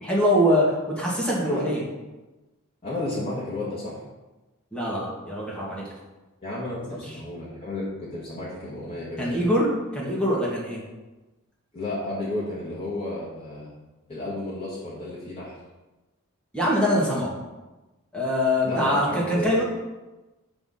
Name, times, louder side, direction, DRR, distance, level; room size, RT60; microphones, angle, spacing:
voice 1, 0.0-1.8 4.7-5.9 9.2-10.8 16.5-17.3 18.1-19.6, equal, 5° left, -6 dB, 2.0 m, -23 dB
voice 2, 2.8-4.0 6.4-9.5 11.7-13.7 14.1-15.6 18.6-19.6, left 1 dB, 25° left, -8 dB, 1.7 m, -32 dB
8.7 x 3.6 x 5.6 m, 1.1 s
head